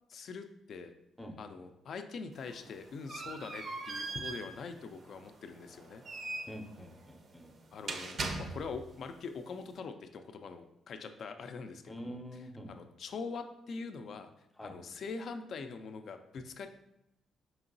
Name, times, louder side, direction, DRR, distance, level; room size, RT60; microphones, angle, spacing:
voice 1, 0.1-0.9 1.4-6.0 7.7-12.2 12.7-14.3 14.6-16.7, left 4 dB, 60° left, 8 dB, 0.3 m, -43 dB
sound 1, 2.3-9.0, right 3 dB, 45° right, 0.4 m, -41 dB
voice 2, 6.5-7.5 11.9-12.7 14.6-14.8, equal, 5° left, 3 dB, 0.5 m, -45 dB
4.5 x 2.9 x 2.6 m, 0.83 s
cardioid pair, 90°, 0 cm